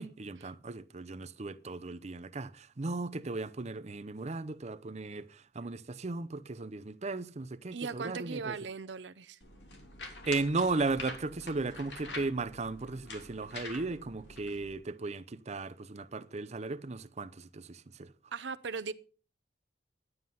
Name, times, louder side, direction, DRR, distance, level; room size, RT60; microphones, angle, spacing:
voice 1, 0.0-8.6 10.2-18.1, right 3 dB, 40° right, 0.7 m, -36 dB
voice 2, 7.7-9.4 18.3-18.9, right 5 dB, 85° right, 0.7 m, -38 dB
sound 1, 9.4-14.7, left 3 dB, 75° left, 3.2 m, -46 dB
11.0 x 9.4 x 5.6 m
head